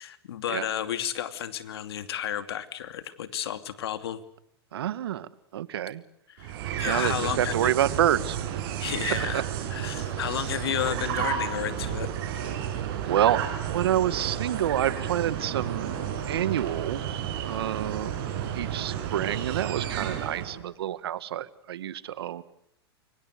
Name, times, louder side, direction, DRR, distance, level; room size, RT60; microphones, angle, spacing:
voice 1, 0.0-4.2 6.3-7.7 8.8-9.4 9.7-12.1, left 10 dB, 75° left, 10 dB, 2.7 m, -32 dB
voice 2, 4.7-6.0 6.7-8.4 9.3-9.4 13.1-15.9 16.3-18.1 18.5-22.4, right 11 dB, 75° right, 16 dB, 1.7 m, -28 dB
sound 1, 6.4-20.6, right 9 dB, 60° right, 6.7 m, -32 dB
29.0 x 24.5 x 6.6 m, 0.72 s
hypercardioid pair, 110°, 13 cm